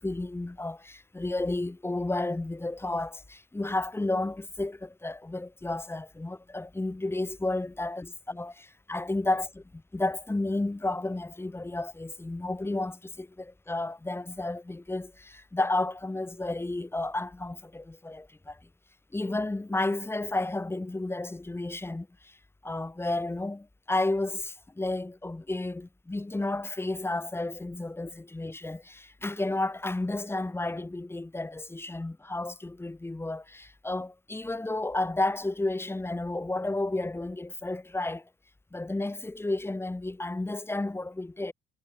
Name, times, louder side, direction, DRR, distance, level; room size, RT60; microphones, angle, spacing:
voice 1, 0.0-18.6 19.1-22.4 22.6-38.3 38.7-41.5, left 2 dB, 10° left, 0.9 m, -32 dB
supercardioid pair, 70°, 20 cm